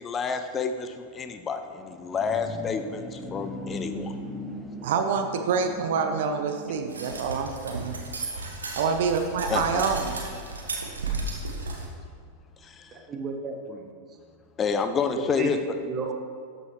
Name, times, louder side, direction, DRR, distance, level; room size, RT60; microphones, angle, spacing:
voice 1, 0.0-4.1 9.5-9.8 12.6-12.9 14.6-15.6, left 6 dB, 25° left, 8 dB, 0.4 m, -29 dB
sound 1, 1.7-7.3, left 1 dB, ahead, 0.7 m, -39 dB
voice 2, 4.8-8.0 8.8-10.1, right 5 dB, 55° right, 6 dB, 0.6 m, -26 dB
sound 2, 6.9-11.9, right 3 dB, 75° right, 1.2 m, -34 dB
voice 3, 12.9-13.9 15.1-15.5 15.8-16.1, right 4 dB, 25° right, 3 dB, 1.1 m, -33 dB
12.0 x 6.5 x 3.2 m, 2.1 s
figure-of-eight pair, 90°, 0 cm